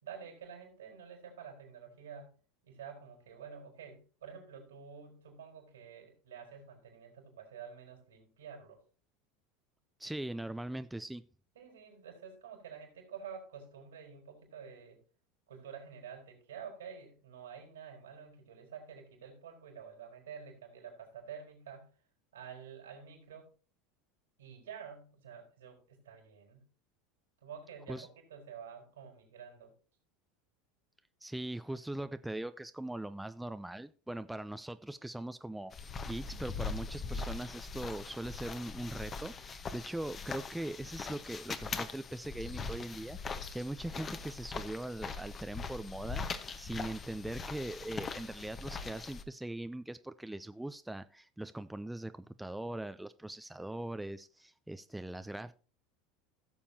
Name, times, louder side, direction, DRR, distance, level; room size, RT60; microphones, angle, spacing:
voice 1, 0.0-2.3 2.6-8.8 11.5-15.0 15.5-21.9 22.3-23.5 24.4-26.7 27.4-29.7, right 7 dB, 80° right, 1 dB, 4.1 m, -49 dB
voice 2, 10.0-11.2 27.9-28.1 31.2-55.5, right 1 dB, 5° right, 11 dB, 0.5 m, -41 dB
sound 1, 35.7-49.2, left 4 dB, 30° left, 1.1 m, -41 dB
16.5 x 7.1 x 2.8 m, 0.37 s
hypercardioid pair, 80°, 0 cm